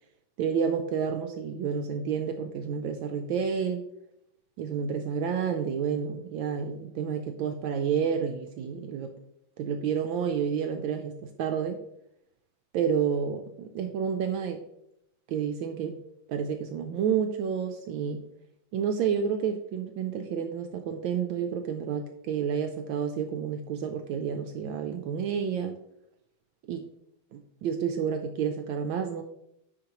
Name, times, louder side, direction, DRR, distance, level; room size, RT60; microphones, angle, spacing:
voice 1, 0.4-3.8 4.6-9.1 9.6-11.8 12.7-14.6 15.3-16.0 16.3-18.2 18.7-25.8 26.7-26.9 27.3-29.2, right 7 dB, 75° right, 5 dB, 1.3 m, -30 dB
8.6 x 5.4 x 3.0 m, 0.79 s
omnidirectional pair, 2.3 m